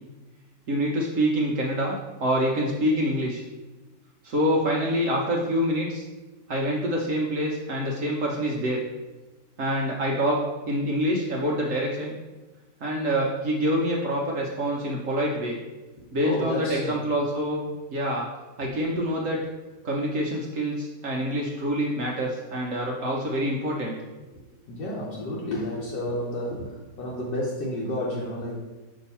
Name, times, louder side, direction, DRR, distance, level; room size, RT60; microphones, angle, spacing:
voice 1, 0.7-3.4 4.2-6.1 6.5-8.8 9.6-10.4 10.7-12.1 12.8-15.6 16.1-18.3 18.6-19.4 19.8-24.0, equal, 60° right, -2 dB, 0.9 m, -26 dB
voice 2, 16.0-17.1 24.3-28.6, left 1 dB, 75° left, -5 dB, 1.5 m, -31 dB
6.1 x 2.8 x 5.5 m, 1.2 s
omnidirectional pair, 1.9 m